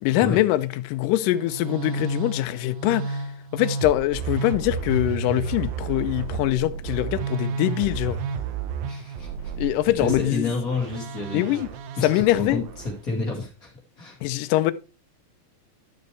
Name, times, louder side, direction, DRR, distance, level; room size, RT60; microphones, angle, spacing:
voice 1, 0.0-8.2 9.6-10.5 11.3-11.7 12.0-12.6 14.2-14.7, left 16 dB, 80° left, 2.1 m, -23 dB
Musical instrument, 1.2-13.0, right 6 dB, 90° right, 2.7 m, -32 dB
voice 2, 8.8-9.3 10.0-11.4 12.0-12.6 13.0-13.7 14.0-14.2, left 3 dB, 30° left, 2.0 m, -29 dB
12.0 x 6.7 x 3.2 m
omnidirectional pair, 4.1 m